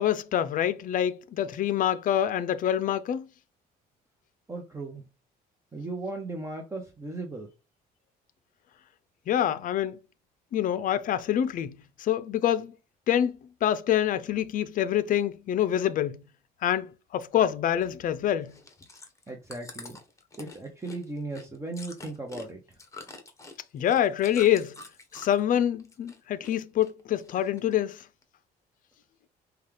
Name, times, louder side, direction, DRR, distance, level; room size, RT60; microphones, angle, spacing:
voice 1, 0.0-3.3 9.3-10.0 10.5-12.7 13.1-16.2 16.6-18.5 23.7-24.8 25.1-28.0, left 10 dB, 55° left, 0.5 m, -26 dB
voice 2, 4.5-5.0 5.7-7.5 19.3-20.0 20.4-22.8, right 2 dB, 15° right, 0.9 m, -37 dB
Chewing mastication, 18.4-25.5 25.8-26.5 26.8-27.7 28.2-28.3, left 3 dB, 20° left, 1.0 m, -46 dB
5.3 x 2.4 x 3.3 m
cardioid pair, 110°, 17 cm